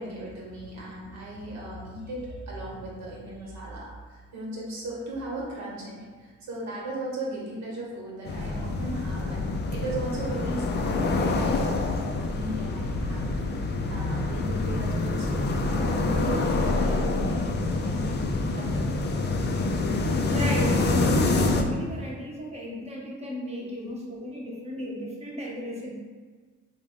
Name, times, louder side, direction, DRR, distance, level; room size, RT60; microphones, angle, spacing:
voice 1, 0.0-18.1 18.5-19.1 23.6-23.7, right 1 dB, 65° right, -4 dB, 1.1 m, -37 dB
sound 1, 8.2-21.6, left 2 dB, 35° left, 0.4 m, -26 dB
voice 2, 20.3-26.0, equal, 20° right, -3 dB, 0.8 m, -34 dB
3.3 x 2.2 x 3.6 m, 1.4 s
cardioid pair, 90°, 30 cm